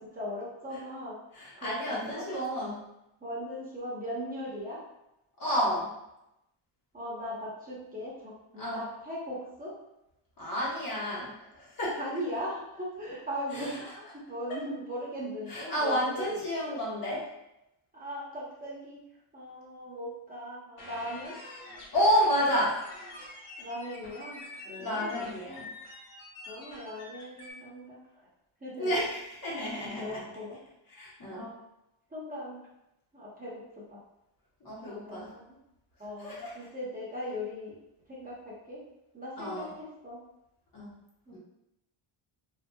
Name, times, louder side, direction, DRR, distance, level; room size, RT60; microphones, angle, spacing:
voice 1, 0.0-1.2 1.5-2.3 3.2-4.8 6.9-9.7 12.0-16.4 17.9-19.0 19.3-21.4 23.6-25.3 26.5-28.0 28.6-28.9 30.0-30.6 31.3-31.5 32.1-32.6 33.1-34.0 34.8-35.6 36.0-37.8 38.1-38.8 39.1-40.2 41.3-41.4, equal, 15° right, -8 dB, 0.8 m, -39 dB
voice 2, 1.3-2.8 5.4-5.9 8.6-8.9 10.4-12.0 13.5-13.7 15.5-17.3 21.9-22.9 24.8-25.7 28.8-30.2 31.0-31.5 34.6-35.3 36.2-36.5 39.4-39.7 40.7-40.9 41.3-41.4, equal, 45° left, -6 dB, 1.1 m, -30 dB
sound 1, 20.8-27.5, left 2 dB, 70° left, 1.3 m, -46 dB
3.8 x 2.7 x 2.2 m, 0.87 s
cardioid pair, 145°, 49 cm